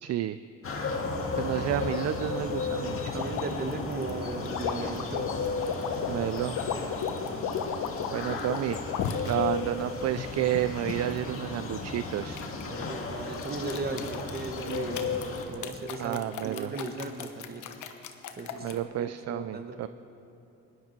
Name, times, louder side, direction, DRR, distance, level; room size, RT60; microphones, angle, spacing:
voice 1, 0.0-0.4 1.3-3.3 6.1-6.6 8.1-8.8 9.3-12.4 16.0-16.7 18.6-19.9, right 13 dB, 60° right, 12 dB, 0.4 m, -31 dB
sound 1, 0.6-15.5, left 4 dB, 45° left, 1.9 m, -34 dB
sound 2, 3.1-9.3 9.9-11.2 12.4-12.9 13.3-18.8, left 8 dB, 80° left, 1.1 m, -35 dB
voice 2, 3.1-5.3 6.1-6.3 12.7-15.2 15.5-17.7 18.3-19.9, right 3 dB, 30° right, 7 dB, 1.3 m, -37 dB
19.0 x 11.0 x 4.5 m, 3.0 s
cardioid pair, 90°, 30 cm